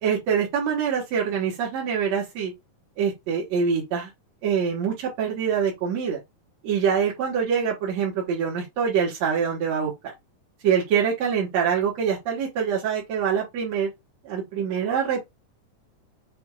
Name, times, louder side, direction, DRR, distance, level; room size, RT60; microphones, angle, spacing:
voice 1, 0.0-2.5 3.0-4.1 4.4-6.2 6.6-9.9 10.6-13.9 14.3-15.3, right 7 dB, 60° right, 2.5 m, -25 dB
6.5 x 3.5 x 2.3 m
omnidirectional pair, 3.8 m